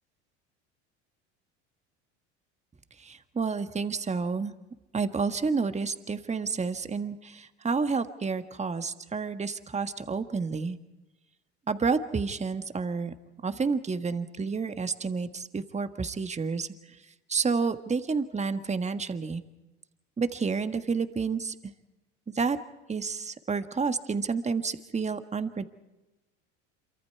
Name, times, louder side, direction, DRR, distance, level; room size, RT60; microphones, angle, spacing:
voice 1, 3.0-4.5 4.9-10.8 11.7-13.1 13.4-16.7 17.3-19.4 20.2-21.6 22.4-22.6 22.9-25.7, right 5 dB, 20° right, 10 dB, 1.6 m, -30 dB
27.5 x 24.5 x 4.7 m, 1.0 s
hypercardioid pair, 75°, 35 cm